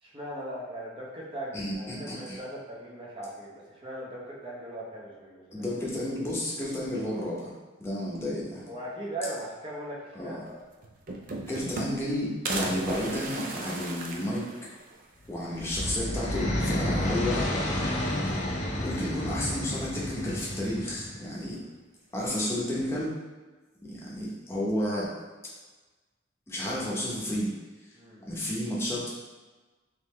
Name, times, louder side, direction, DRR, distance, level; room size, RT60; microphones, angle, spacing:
voice 1, 0.0-5.6 8.7-10.6 27.9-28.2, right 1 dB, 25° right, -5 dB, 0.9 m, -39 dB
voice 2, 1.5-2.4 5.5-7.5 7.8-8.7 10.1-10.4 11.5-14.5 15.3-17.9 18.8-21.6 22.1-23.1 23.8-25.1 26.5-27.6 28.3-29.1, left 1 dB, 15° left, -6 dB, 0.9 m, -31 dB
sound 1, 10.5-10.6 10.8-12.1 12.5-15.1 15.5-15.6 15.8-15.9 17.1-17.6 17.9-18.7 19.7-20.3, right 3 dB, 45° right, 0.4 m, -36 dB
sound 2, 15.3-21.3, left 1 dB, 40° left, 0.6 m, -30 dB
3.8 x 3.0 x 3.2 m, 1.3 s
head